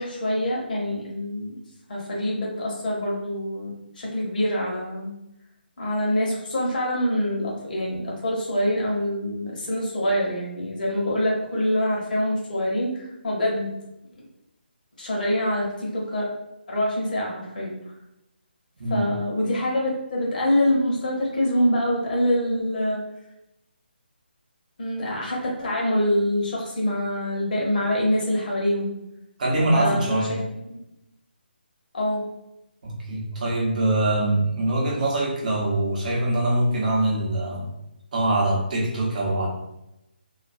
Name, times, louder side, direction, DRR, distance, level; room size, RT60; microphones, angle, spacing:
voice 1, 0.0-1.6 1.9-3.7 4.0-5.1 5.8-13.7 15.0-16.3 16.7-17.7 18.9-23.0 24.8-28.9 29.7-30.4 30.6-30.8 31.9-32.2, left 1 dB, 50° left, -3 dB, 0.8 m, -25 dB
voice 2, 29.4-30.4 32.8-37.7 38.1-39.5, right 1 dB, 45° right, -4 dB, 0.7 m, -23 dB
2.3 x 2.2 x 2.5 m, 0.88 s
figure-of-eight pair, 150°, 6 cm